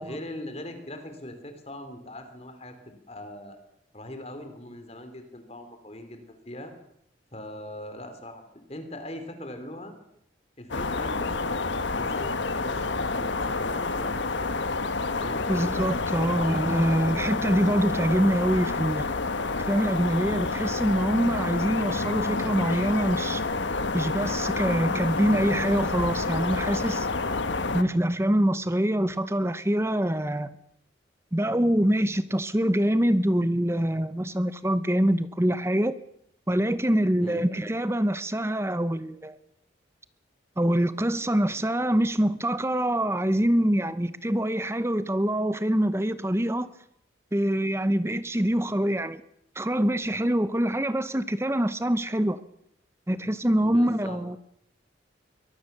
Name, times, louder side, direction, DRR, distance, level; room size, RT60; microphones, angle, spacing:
voice 1, 0.0-3.6 3.9-6.7 7.3-8.4 8.7-9.9 10.6-11.7 12.0-14.4 15.1-15.4 16.2-17.0 37.2-37.4 53.6-54.2, left 1 dB, 35° left, 3.1 m, -41 dB
sound 1, 10.7-27.8, left 3 dB, 80° left, 1.3 m, -28 dB
voice 2, 15.5-19.1 19.7-23.4 23.9-27.1 27.7-30.5 31.3-35.9 36.5-39.4 40.6-46.7 47.3-49.2 49.6-52.4 53.1-54.4, right 1 dB, 15° right, 0.8 m, -25 dB
23.0 x 19.0 x 6.8 m
head